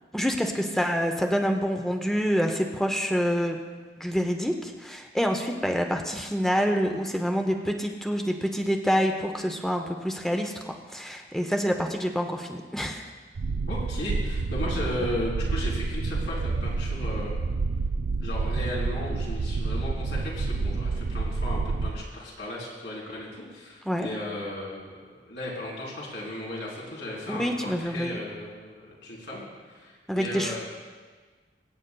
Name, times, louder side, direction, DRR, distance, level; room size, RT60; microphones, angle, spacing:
voice 1, 0.1-3.6 4.0-10.5 10.9-13.1 23.9-24.1 27.3-28.2 30.1-30.6, equal, 5° left, 3 dB, 0.6 m, -27 dB
sound 1, 13.4-22.0, right 3 dB, 80° right, 0.4 m, -29 dB
voice 2, 13.7-17.4 18.2-30.6, left 1 dB, 80° left, -5 dB, 3.8 m, -35 dB
23.5 x 8.9 x 2.3 m, 1.4 s
head